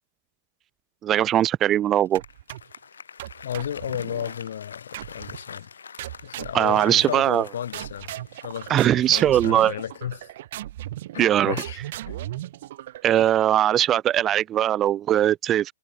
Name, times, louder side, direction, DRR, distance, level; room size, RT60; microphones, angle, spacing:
voice 1, 1.0-2.2 6.5-7.5 8.7-9.8 11.2-11.5 13.0-15.7, right 11 dB, 25° right, 0.4 m, -20 dB
Applause, 1.9-10.1, left 6 dB, 85° left, 1.1 m, -45 dB
sound 1, 2.1-2.8 3.2-4.4 4.9-5.5 6.0-7.4 7.7-13.4, right 14 dB, 60° right, 0.9 m, -37 dB
voice 2, 3.4-5.8 6.2-8.1 8.4-10.3 11.1-11.8 12.1-12.4, left 9 dB, 70° left, 0.6 m, -33 dB
hypercardioid pair, 130°, 0 cm